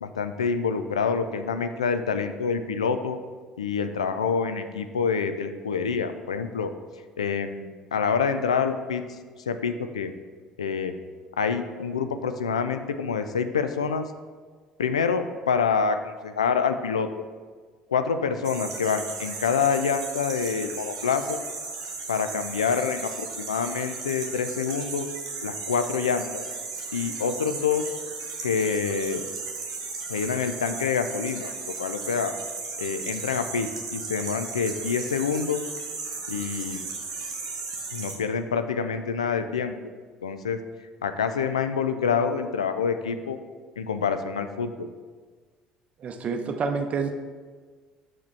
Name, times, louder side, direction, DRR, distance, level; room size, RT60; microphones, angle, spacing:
voice 1, 0.0-3.2 3.6-6.7 7.2-9.0 9.5-10.1 10.6-10.9 11.4-14.1 14.8-17.1 17.9-21.4 22.1-25.1 25.4-26.4 26.9-27.9 28.4-29.3 30.1-31.5 31.8-32.3 32.8-35.6 36.3-36.8 37.9-39.7 40.2-40.6 41.0-43.4 43.8-44.9, left 6 dB, 80° left, 9 dB, 0.3 m, -27 dB
sound 1, 18.4-38.2, right 4 dB, 75° right, 0.9 m, -35 dB
voice 2, 46.0-47.1, right 5 dB, 40° right, 7 dB, 0.6 m, -28 dB
5.9 x 4.7 x 4.5 m, 1.5 s
figure-of-eight pair, 60°, 3 cm